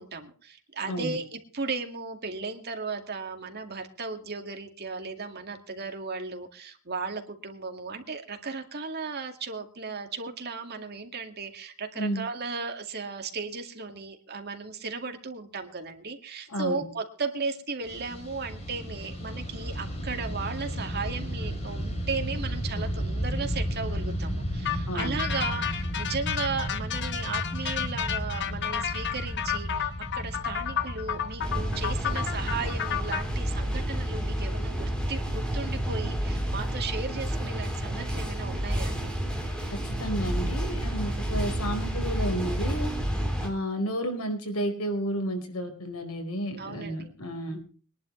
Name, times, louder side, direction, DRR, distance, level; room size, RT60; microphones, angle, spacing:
voice 1, 0.0-39.1 46.6-47.1, right 4 dB, 45° right, 5 dB, 2.2 m, -36 dB
voice 2, 16.5-16.8 24.9-25.2 39.8-42.9 43.4-47.6, right 1 dB, 85° left, 4 dB, 4.7 m, -32 dB
Fixed-wing aircraft airplane, 17.8-35.3, equal, 30° left, 4.0 m, -34 dB
sound 1, 24.6-33.2, left 9 dB, 55° left, 1.3 m, -32 dB
sound 2, 31.4-43.5, equal, 5° left, 3.8 m, -30 dB
22.5 x 11.0 x 3.3 m, 0.39 s
head